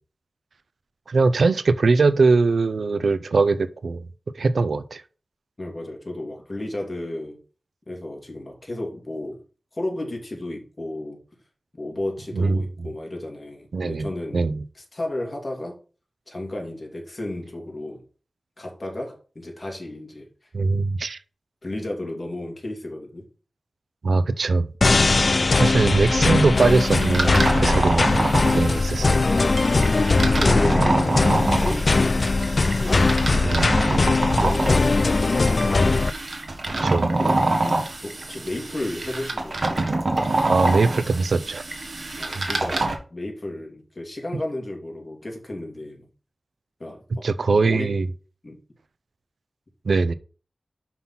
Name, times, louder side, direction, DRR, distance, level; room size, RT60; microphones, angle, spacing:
voice 1, 1.1-4.0 4.4-5.0 12.3-12.6 13.7-14.1 14.3-14.5 20.5-21.2 24.0-24.7 25.6-28.1 28.6-29.2 33.4-33.8 36.8-37.1 40.5-41.6 42.3-42.5 47.2-48.1 49.9-50.1, right 3 dB, 80° right, 0.5 m, -21 dB
voice 2, 5.6-7.4 7.9-9.4 9.7-11.2 11.7-15.8 16.3-18.0 18.6-20.3 21.6-23.2 25.2-25.4 28.1-28.3 30.0-32.2 32.8-33.6 33.9-35.1 37.2-40.0 42.2-46.1 46.8-47.2 47.5-47.9 48.4-48.6, left 1 dB, 30° left, 2.6 m, -33 dB
sound 1, 24.8-36.1, left 3 dB, 50° left, 0.3 m, -20 dB
sound 2, 26.6-43.0, right 2 dB, 50° right, 1.5 m, -26 dB
5.7 x 5.7 x 5.9 m
wide cardioid pair, 95°, 0 cm